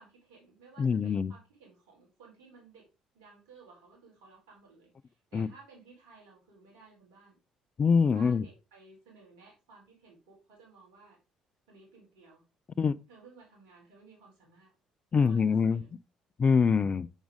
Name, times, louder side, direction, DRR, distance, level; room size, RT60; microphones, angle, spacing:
voice 1, 0.0-2.9 3.1-7.4 8.1-11.2 11.7-12.4 13.1-14.7 15.1-15.9, right 4 dB, 75° right, 4.4 m, -56 dB
voice 2, 0.8-1.3 5.3-5.5 7.8-8.4 12.8-12.9 15.1-15.8 16.4-17.1, left 5 dB, 40° left, 0.4 m, -24 dB
7.0 x 6.3 x 3.6 m
hypercardioid pair, 50°, 3 cm